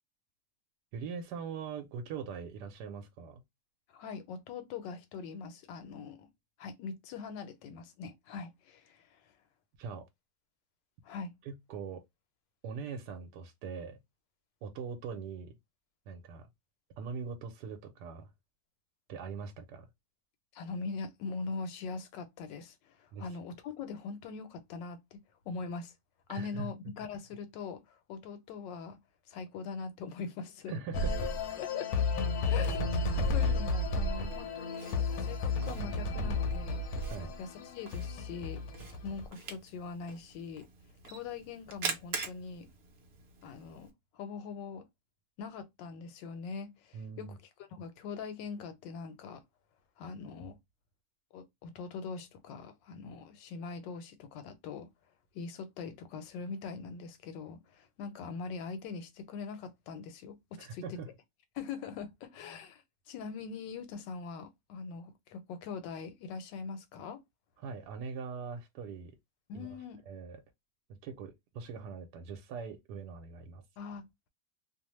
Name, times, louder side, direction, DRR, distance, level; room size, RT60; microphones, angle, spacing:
voice 1, 0.9-3.4 9.8-10.0 11.4-12.0 12.6-14.0 14.6-15.5 16.1-16.5 17.0-18.3 19.1-19.9 23.1-23.3 26.3-26.7 30.7-31.2 33.4-33.5 37.1-37.3 46.9-47.4 60.6-61.1 67.6-69.1 69.5-69.7 70.1-70.4 71.0-73.6, right 5 dB, 75° right, 1.1 m, -41 dB
voice 2, 3.9-6.3 6.6-9.2 11.0-11.3 20.5-25.2 25.4-25.9 26.3-29.0 29.3-30.7 31.6-31.9 32.5-34.9 35.2-36.8 37.4-37.5 37.7-38.6 39.0-40.7 41.0-42.7 43.4-44.8 45.4-47.3 47.7-49.4 50.0-50.6 51.3-54.9 55.3-61.0 61.5-67.2 69.5-70.0 73.8-74.1, left 5 dB, 85° left, 1.3 m, -42 dB
sound 1, 30.9-39.2, left 3 dB, 70° left, 1.0 m, -32 dB
Camera, 31.9-43.9, right 4 dB, 60° right, 0.6 m, -46 dB
2.9 x 2.0 x 2.9 m
omnidirectional pair, 1.9 m